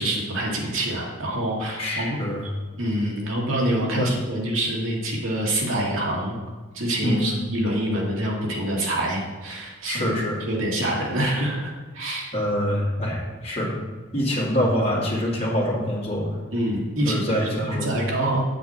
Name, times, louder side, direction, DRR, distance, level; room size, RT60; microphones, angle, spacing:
voice 1, 0.0-2.2 2.4-2.5 2.8-6.4 6.7-10.1 10.4-12.3 16.5-17.4 17.7-18.4, right 1 dB, 75° right, -2 dB, 2.1 m, -26 dB
voice 2, 1.8-2.5 4.0-4.1 7.0-7.4 9.9-10.4 12.3-13.7 14.1-16.3 17.0-17.9, equal, 30° left, -5 dB, 2.4 m, -25 dB
7.9 x 7.7 x 4.3 m, 1.3 s
head